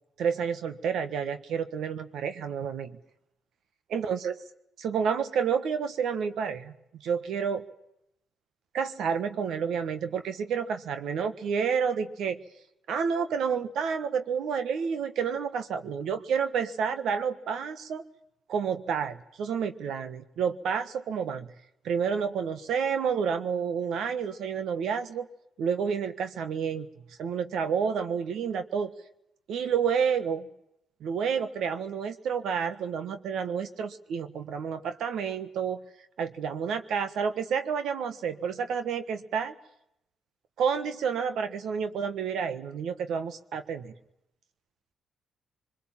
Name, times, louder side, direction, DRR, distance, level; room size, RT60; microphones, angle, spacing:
voice 1, 0.2-3.0 3.9-4.3 4.8-7.6 8.7-12.4 12.9-18.0 18.5-21.5 21.8-25.3 25.6-26.9 27.2-28.9 29.5-30.5 31.0-35.8 36.2-39.5 40.6-43.9, right 6 dB, 75° right, 9 dB, 1.4 m, -29 dB
23.5 x 22.0 x 7.5 m, 0.82 s
cardioid pair, 90°, 0 cm